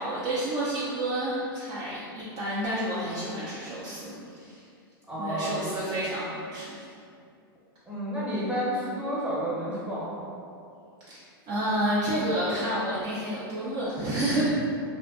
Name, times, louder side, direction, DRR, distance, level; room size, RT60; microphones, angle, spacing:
voice 1, 0.0-4.6 5.2-6.9 11.1-14.4, right 1 dB, 35° right, -8 dB, 0.4 m, -30 dB
voice 2, 5.1-5.7 7.9-10.3, equal, 10° right, -9 dB, 0.8 m, -30 dB
2.5 x 2.1 x 2.4 m, 2.4 s
hypercardioid pair, 120°, 12 cm